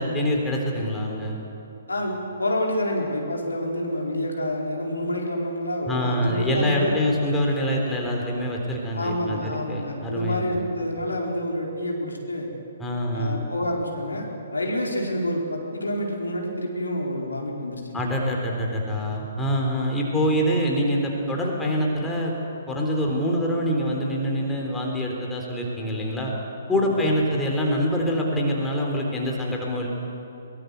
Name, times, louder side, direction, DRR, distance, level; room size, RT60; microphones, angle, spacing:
voice 1, 0.0-1.4 5.9-10.6 12.8-13.4 17.9-22.3 22.7-26.3 26.7-29.9, equal, 10° left, -1 dB, 3.8 m, -25 dB
voice 2, 1.9-6.9 8.9-12.5 13.1-14.3 14.5-18.1 26.7-26.9, left 1 dB, 75° left, 0 dB, 4.5 m, -28 dB
22.5 x 21.5 x 8.2 m, 2.9 s
figure-of-eight pair, 130°, 0 cm